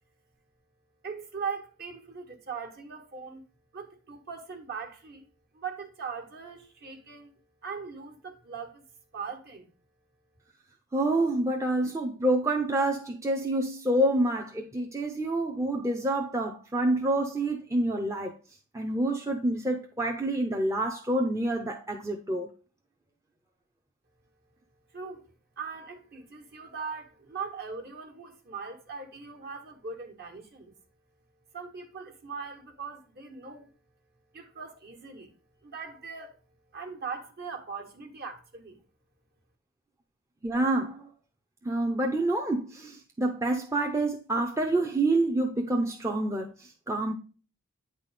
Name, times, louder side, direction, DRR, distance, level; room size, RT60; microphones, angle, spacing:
voice 1, 1.0-3.4 3.7-5.2 5.5-7.3 7.6-8.8 9.1-9.7 24.9-25.2 25.6-30.7 31.5-33.7 34.3-35.3 35.6-36.3 36.7-38.8, right 5 dB, 50° right, 1.4 m, -40 dB
voice 2, 10.9-18.3 18.7-22.5 40.4-41.1 41.6-47.1, right 1 dB, 15° right, 0.6 m, -27 dB
8.9 x 4.2 x 3.4 m
head